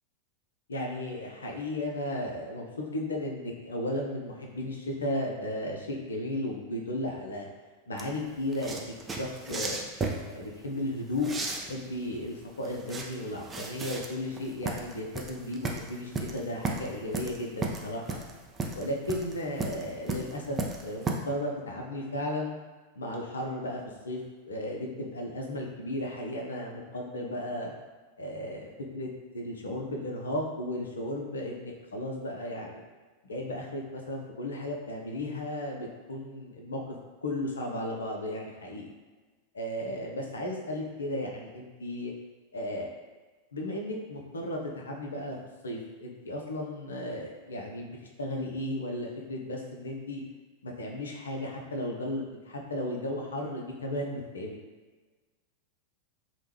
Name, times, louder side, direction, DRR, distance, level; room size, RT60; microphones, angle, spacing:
voice 1, 0.7-7.5 7.9-9.9 10.3-18.2 18.7-22.5 23.0-23.8 24.0-24.2 24.4-27.7 28.2-28.7 28.9-29.1 29.3-32.8 33.3-37.0 37.2-38.9 39.5-42.1 42.5-42.9 43.5-45.4 45.6-50.2 50.6-54.6, left 1 dB, 70° left, 0 dB, 0.5 m, -35 dB
sound 1, 8.0-21.1, right 3 dB, 20° right, 0.4 m, -35 dB
3.1 x 2.1 x 3.2 m, 1.3 s
figure-of-eight pair, 90°, 0 cm